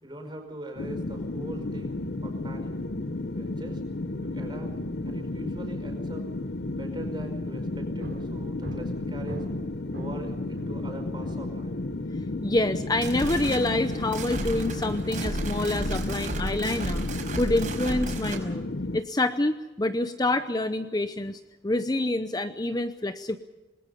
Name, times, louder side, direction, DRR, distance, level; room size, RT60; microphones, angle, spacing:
voice 1, 0.0-2.7 3.3-3.8 4.2-4.8 5.0-6.3 6.7-9.4 9.9-11.8, right 1 dB, 25° right, 5 dB, 5.1 m, -42 dB
sound 1, 0.8-19.0, left 2 dB, 60° left, 0.8 m, -33 dB
sound 2, 7.0-7.2 7.4-11.5, equal, 75° right, 5.5 m, -42 dB
voice 2, 12.4-18.7 18.9-23.4, left 2 dB, 20° left, 10 dB, 0.7 m, -27 dB
sound 3, 12.8-18.4, right 1 dB, 45° right, 5.2 m, -33 dB
27.0 x 20.5 x 5.5 m, 1.1 s
head